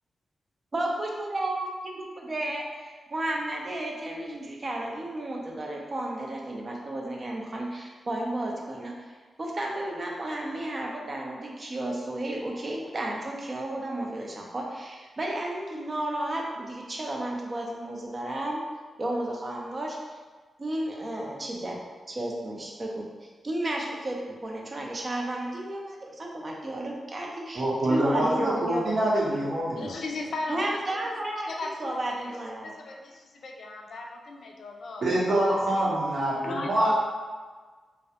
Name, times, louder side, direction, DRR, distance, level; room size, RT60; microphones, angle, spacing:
voice 1, 0.7-18.6 19.0-20.0 20.6-21.8 22.1-23.1 23.4-29.5 30.5-32.7, right 1 dB, 40° right, -1 dB, 0.4 m, -33 dB
voice 2, 27.5-29.9 35.0-36.9, right 1 dB, 70° right, -7 dB, 0.8 m, -25 dB
voice 3, 29.8-30.8 31.6-32.4 32.6-35.0 35.5-35.9 36.4-36.8, left 2 dB, 75° left, 1 dB, 0.3 m, -37 dB
2.3 x 2.0 x 2.7 m, 1.4 s
cardioid pair, 85°, 0 cm